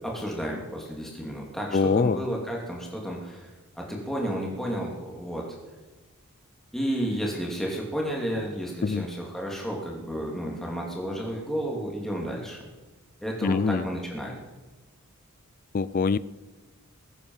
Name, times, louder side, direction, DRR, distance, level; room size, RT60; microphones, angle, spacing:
voice 1, 0.0-3.5 3.8-5.4 6.7-12.6 13.2-14.4, equal, ahead, 2.8 m, -32 dB
voice 2, 1.7-2.2 8.8-9.1 13.4-13.8 15.7-16.2, left 4 dB, 40° left, 0.4 m, -23 dB
20.5 x 9.4 x 5.7 m
head